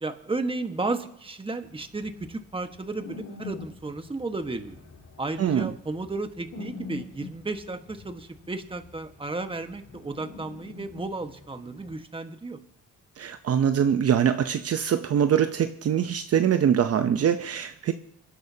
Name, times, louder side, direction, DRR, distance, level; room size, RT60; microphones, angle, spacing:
voice 1, 0.0-4.8 5.2-12.6, right 3 dB, 15° right, 7 dB, 1.5 m, -33 dB
sound 1, 1.6-12.0, left 5 dB, 60° left, 2.9 m, -45 dB
voice 2, 5.4-5.7 13.2-17.9, right 8 dB, 55° right, 8 dB, 0.8 m, -23 dB
27.5 x 11.5 x 2.9 m, 0.73 s
cardioid pair, 90°, 30 cm